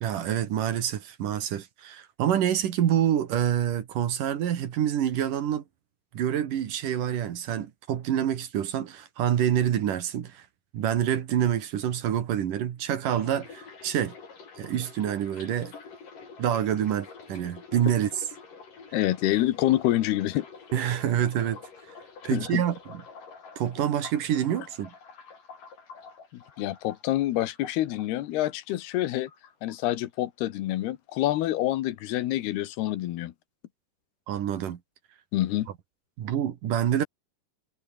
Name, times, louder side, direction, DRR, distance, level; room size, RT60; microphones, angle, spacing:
voice 1, 0.0-5.6 6.1-10.5 10.7-14.1 14.6-15.7 16.4-18.1 20.7-21.6 22.2-23.0 23.6-24.9 34.3-34.8 36.2-37.0, right 10 dB, 60° right, 3.1 m, -27 dB
sound 1, 13.0-29.0 29.3-30.2 30.4-30.8, left 5 dB, 55° left, 6.5 m, -47 dB
voice 2, 18.9-20.5 22.3-22.6 26.3-29.3 29.6-33.3 35.3-35.7, left 14 dB, 85° left, 3.2 m, -27 dB
omnidirectional pair, 4.5 m